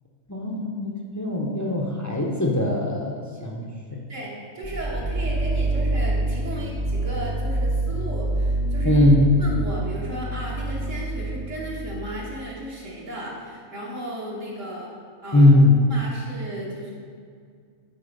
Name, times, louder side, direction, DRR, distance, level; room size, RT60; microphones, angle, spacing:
voice 1, 0.3-4.0 8.8-9.3 15.3-15.7, left 1 dB, 20° left, -2 dB, 0.6 m, -20 dB
voice 2, 4.1-9.0 9.4-14.9 15.2-15.5 15.9-16.9, right 1 dB, 65° right, -5 dB, 1.7 m, -35 dB
sound 1, 4.6-12.3, right 2 dB, 30° right, 0.8 m, -26 dB
9.4 x 4.3 x 5.3 m, 2.1 s
omnidirectional pair, 1.4 m